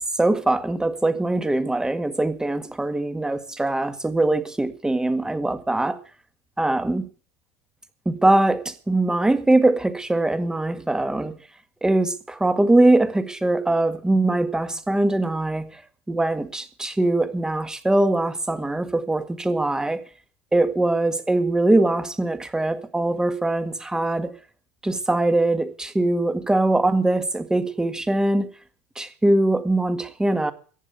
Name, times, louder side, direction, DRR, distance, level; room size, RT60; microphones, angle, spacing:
voice 1, 0.2-6.0 6.6-7.0 8.1-11.3 11.8-15.7 16.1-20.0 20.5-24.3 24.8-28.5 29.0-30.5, right 2 dB, 10° right, 1.7 m, -22 dB
15.0 x 9.9 x 6.7 m
hypercardioid pair, 75°, 7 cm